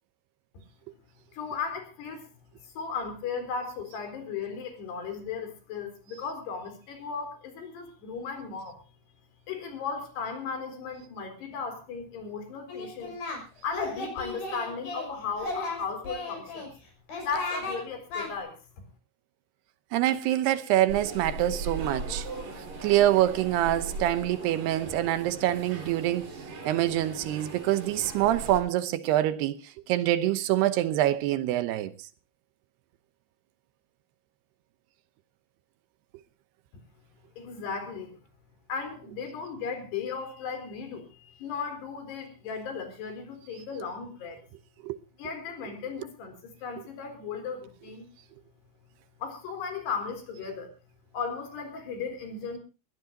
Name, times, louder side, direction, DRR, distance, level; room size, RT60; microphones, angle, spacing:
voice 1, 1.3-2.3 2.6-8.8 9.5-13.1 13.6-16.7 17.2-18.6 37.4-38.1 38.7-44.4 45.2-46.3 46.6-48.0 49.2-50.7 51.1-52.6, left 5 dB, 75° left, 6.1 m, -36 dB
Singing, 12.7-13.4 13.7-15.1 15.4-16.7 17.1-17.8 18.1-18.3, left 2 dB, 60° left, 7.5 m, -35 dB
voice 2, 19.9-22.3 22.8-26.4 26.7-29.6 29.9-31.9 44.8-45.0, right 13 dB, 80° right, 3.0 m, -25 dB
sound 1, 20.9-28.6, right 3 dB, 55° right, 5.8 m, -39 dB
21.5 x 16.5 x 2.8 m
omnidirectional pair, 4.7 m